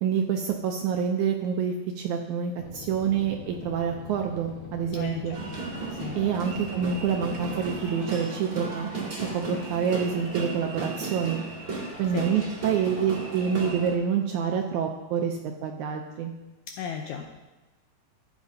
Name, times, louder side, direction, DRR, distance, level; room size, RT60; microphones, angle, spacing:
voice 1, 0.0-5.4 6.2-8.9 9.3-11.4 12.0-16.3, right 7 dB, 80° right, 3 dB, 1.8 m, -27 dB
sound 1, 2.6-7.8, left 5 dB, 60° left, 2.0 m, -43 dB
sound 2, 5.3-14.0, right 3 dB, 40° right, 1.4 m, -35 dB
voice 2, 16.7-17.4, left 7 dB, 80° left, 3 dB, 1.8 m, -35 dB
13.5 x 8.1 x 2.7 m, 1.1 s
omnidirectional pair, 4.0 m